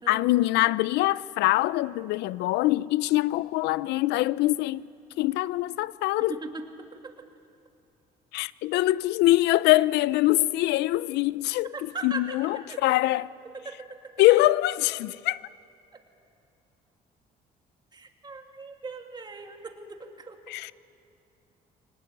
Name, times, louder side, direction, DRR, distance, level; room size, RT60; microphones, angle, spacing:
voice 1, 0.1-4.9 5.2-6.4 8.3-11.7 12.0-13.3 14.2-15.4 20.5-20.7, left 17 dB, 85° left, 0.5 m, -23 dB
voice 2, 6.3-6.6 7.0-7.1 11.7-12.4 12.7-13.0 13.5-14.1 15.9-16.0 17.9-20.4, right 3 dB, 25° right, 2.5 m, -39 dB
24.0 x 19.5 x 9.3 m
cardioid pair, 110°, 17 cm